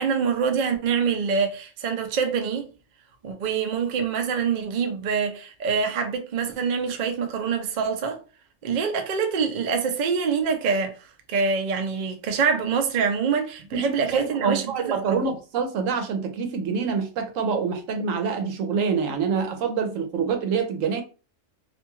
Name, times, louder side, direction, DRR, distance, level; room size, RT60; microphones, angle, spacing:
voice 1, 0.0-2.7 3.2-8.2 8.6-10.9 11.3-15.2, right 6 dB, 60° right, 0.5 m, -25 dB
voice 2, 13.7-21.0, right 5 dB, 90° right, 1.0 m, -26 dB
2.6 x 2.3 x 2.9 m
omnidirectional pair, 1.3 m